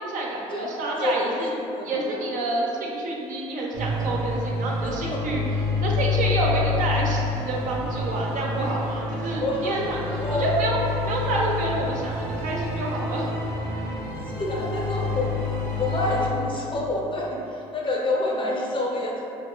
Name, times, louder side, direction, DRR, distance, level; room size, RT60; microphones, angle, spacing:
voice 1, 0.0-1.5 1.8-5.4 5.7-13.3, right 2 dB, 55° right, -2 dB, 0.6 m, -28 dB
voice 2, 1.0-2.0 5.0-5.2 9.4-9.7 10.2-10.5 14.4-15.3 15.8-19.2, left 2 dB, 35° left, -2 dB, 0.6 m, -27 dB
sound 1, 3.7-16.3, left 3 dB, 85° right, 1.1 m, -28 dB
4.0 x 2.3 x 2.2 m, 2.8 s
hypercardioid pair, 65°, 16 cm